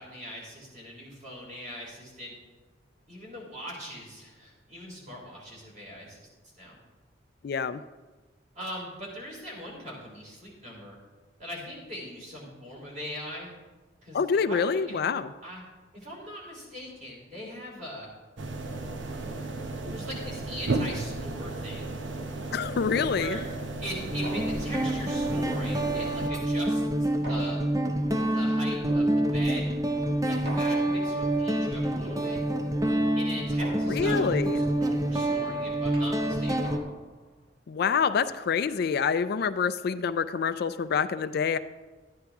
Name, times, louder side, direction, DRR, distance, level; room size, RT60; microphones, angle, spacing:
voice 1, 0.0-2.3 3.1-6.3 6.6-6.8 8.5-11.0 11.4-13.5 14.0-14.2 14.5-15.0 15.4-15.6 15.9-18.1 19.9-21.8 23.1-23.4 23.8-27.6 28.2-29.7 30.3-32.4 33.2-36.7, equal, 40° right, -3 dB, 3.6 m, -41 dB
voice 2, 7.4-7.8 14.1-15.3 22.5-23.4 33.9-34.6 37.7-41.6, left 6 dB, 55° left, 12 dB, 0.3 m, -26 dB
sound 1, 18.4-26.3, right 2 dB, 75° right, 0.8 m, -34 dB
sound 2, 22.9-23.4 24.2-24.9 25.8-26.6 27.2-28.0 28.9-29.6 30.5-31.2 32.1-32.7 33.6-34.3 35.2-37.3, equal, 55° right, 1.6 m, -43 dB
Guitar, 23.0-23.1 24.1-36.8, right 1 dB, 20° right, 0.5 m, -27 dB
12.5 x 9.8 x 3.5 m, 1.3 s
head